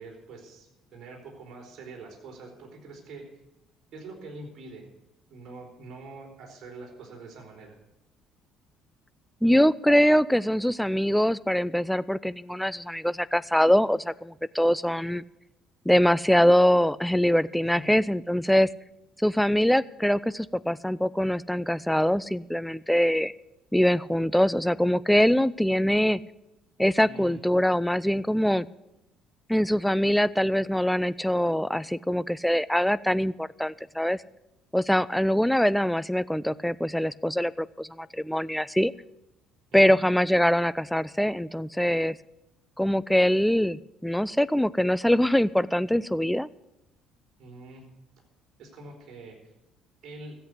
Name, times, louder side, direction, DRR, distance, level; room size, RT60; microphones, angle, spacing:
voice 1, 0.0-3.3 3.9-4.8 5.3-7.7 17.7-17.9 27.0-27.4 39.9-40.0 47.4-47.9 48.6-49.4 50.0-50.4, right 3 dB, 50° right, 0 dB, 4.3 m, -44 dB
voice 2, 9.4-15.2 15.9-18.7 19.2-23.3 23.7-26.2 26.8-28.7 29.5-34.2 34.7-38.9 39.7-42.2 42.8-46.5, equal, 5° left, 17 dB, 0.4 m, -23 dB
14.0 x 7.9 x 8.3 m, 0.90 s
figure-of-eight pair, 50°, 0 cm